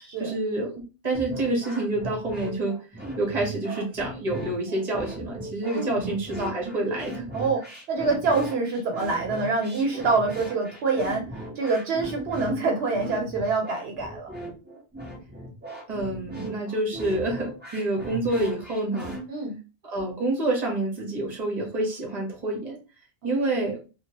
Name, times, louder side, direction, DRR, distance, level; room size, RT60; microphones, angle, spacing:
voice 1, 0.2-2.8 3.2-7.2 15.9-19.2 19.9-22.8 23.2-23.8, right 2 dB, 40° right, 0 dB, 1.1 m, -28 dB
sound 1, 1.1-19.2, equal, 10° right, 0.7 m, -38 dB
voice 2, 5.7-6.1 7.3-14.3 19.3-19.6, right 3 dB, 80° right, 1 dB, 0.9 m, -26 dB
2.9 x 2.3 x 2.8 m, 0.31 s
omnidirectional pair, 1.0 m